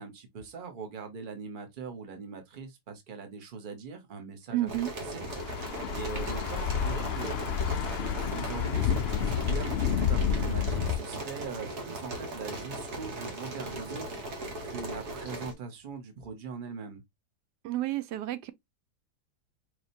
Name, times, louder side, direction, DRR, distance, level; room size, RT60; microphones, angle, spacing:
voice 1, 0.0-4.7 5.0-5.2 5.7-7.4 8.3-8.9 9.2-14.1 14.6-17.0, right 5 dB, 35° right, 1.0 m, -41 dB
voice 2, 4.5-4.9 17.6-18.5, right 15 dB, 90° right, 1.2 m, -30 dB
sound 1, 4.7-15.5, right 2 dB, 70° right, 1.7 m, -38 dB
Thunder / Bicycle, 5.2-11.0, left 8 dB, 85° left, 0.5 m, -30 dB
4.8 x 2.9 x 2.6 m
omnidirectional pair, 1.7 m